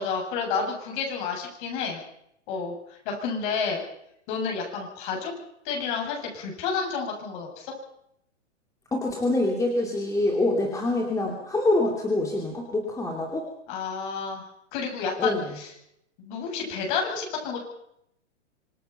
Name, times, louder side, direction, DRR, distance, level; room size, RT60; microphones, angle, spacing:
voice 1, 0.0-2.0 2.5-2.7 3.0-3.8 4.3-5.3 5.6-7.7 13.7-14.5 14.7-15.7 16.2-17.6, left 5 dB, 40° left, 1 dB, 8.0 m, -30 dB
voice 2, 8.9-13.4 15.2-15.4, left 2 dB, 10° left, 1 dB, 2.7 m, -25 dB
26.0 x 20.0 x 5.8 m, 0.76 s
hypercardioid pair, 130°, 36 cm